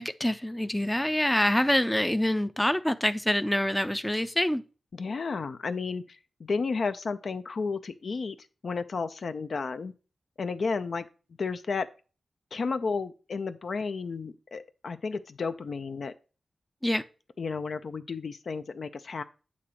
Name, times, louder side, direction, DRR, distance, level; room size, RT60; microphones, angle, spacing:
voice 1, 0.0-4.6 16.8-17.0, left 1 dB, 10° left, 0.4 m, -26 dB
voice 2, 4.9-8.4 8.6-9.9 10.4-11.1 11.4-11.9 12.5-16.1 17.4-19.2, left 4 dB, 65° left, 0.5 m, -32 dB
8.4 x 2.9 x 6.1 m
cardioid pair, 75°, 0 cm